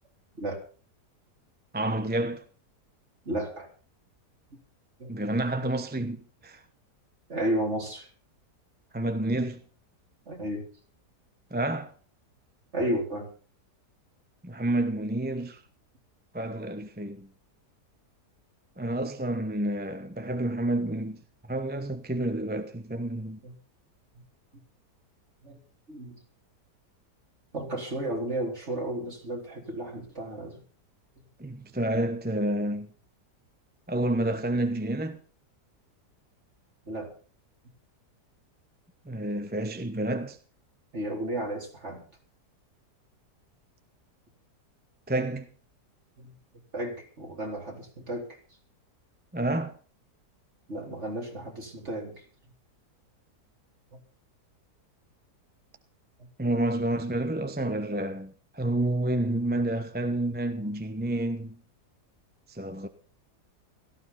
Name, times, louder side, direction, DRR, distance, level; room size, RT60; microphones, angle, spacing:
voice 1, 1.7-2.4 5.1-6.6 8.9-9.6 11.5-11.9 14.4-15.6 16.3-17.3 18.8-21.2 21.5-23.4 31.4-32.9 33.9-35.2 39.0-40.4 45.1-45.5 49.3-49.7 56.4-61.6 62.5-62.9, right 1 dB, 10° right, 0.7 m, -29 dB
voice 2, 3.2-3.7 5.0-5.1 7.3-8.1 10.3-10.7 12.7-13.3 23.4-23.5 25.4-25.6 25.9-26.2 27.5-30.6 36.9-37.1 40.9-42.1 46.2-46.3 46.7-48.4 50.7-52.2 56.2-56.3, right 1 dB, 40° right, 4.3 m, -33 dB
17.0 x 14.5 x 4.2 m
omnidirectional pair, 1.8 m